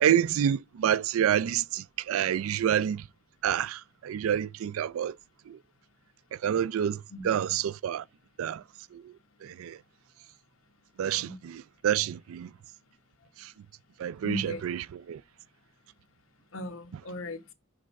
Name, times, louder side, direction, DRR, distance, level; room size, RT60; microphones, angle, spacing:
voice 1, 0.0-3.0 3.4-5.1 5.5-5.6 6.4-8.0 8.4-8.6 8.9-9.0 9.4-9.8 11.0-12.5 14.0-15.2, right 9 dB, 80° right, 0.3 m, -28 dB
voice 2, 14.2-14.7 16.5-17.5, left 3 dB, 75° left, 1.1 m, -38 dB
6.2 x 3.3 x 5.1 m
head